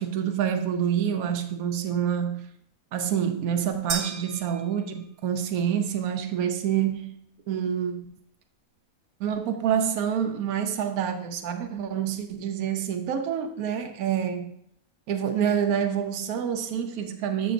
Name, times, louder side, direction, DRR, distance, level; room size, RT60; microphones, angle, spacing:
voice 1, 0.0-2.5 2.9-7.2 7.5-8.1 9.2-14.5 15.1-17.5, right 8 dB, 85° right, 1.1 m, -27 dB
sound 1, 3.9-5.3, right 6 dB, 60° right, 0.9 m, -35 dB
7.9 x 6.6 x 2.5 m
omnidirectional pair, 1.5 m